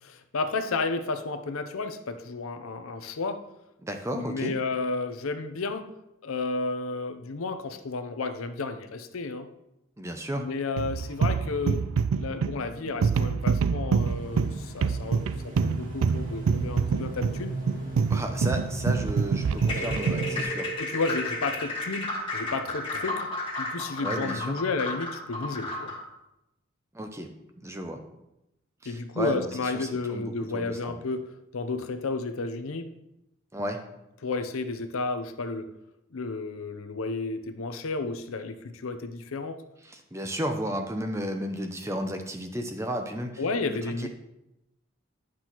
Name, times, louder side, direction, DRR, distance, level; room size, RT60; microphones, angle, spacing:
voice 1, 0.1-3.4 4.1-5.9 6.2-9.5 10.3-11.9 12.2-17.6 20.8-23.3 23.6-25.9 28.9-32.9 34.2-35.7 36.1-39.6 43.4-44.1, left 3 dB, 90° left, 8 dB, 0.6 m, -32 dB
voice 2, 3.8-4.5 10.0-10.5 18.1-20.7 24.0-24.6 26.9-27.3 27.6-28.0 28.8-31.0 33.5-33.8 39.8-43.4 43.7-44.1, equal, 15° right, 5 dB, 0.6 m, -33 dB
sound 1, 10.8-20.3, right 5 dB, 90° right, 0.4 m, -26 dB
sound 2, 13.9-20.4, right 2 dB, 40° right, 1.9 m, -38 dB
sound 3, 19.6-26.1, left 2 dB, 25° left, 1.5 m, -33 dB
9.9 x 6.0 x 3.0 m, 0.88 s
head